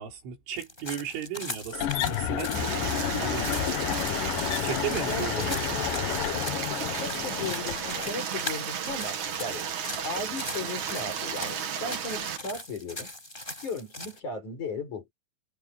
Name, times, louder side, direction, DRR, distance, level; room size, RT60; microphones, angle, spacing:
voice 1, 0.0-3.6 4.6-5.8, right 9 dB, 90° right, 7.4 m, -36 dB
sound 1, 0.6-14.2, left 1 dB, 10° left, 6.8 m, -40 dB
sound 2, 1.7-8.2, left 10 dB, 65° left, 2.3 m, -30 dB
Stream, 2.5-12.4, right 7 dB, 50° right, 2.8 m, -34 dB
voice 2, 5.0-5.6 6.9-9.7 10.0-13.1 13.6-15.1, left 3 dB, 40° left, 7.7 m, -36 dB
omnidirectional pair, 5.4 m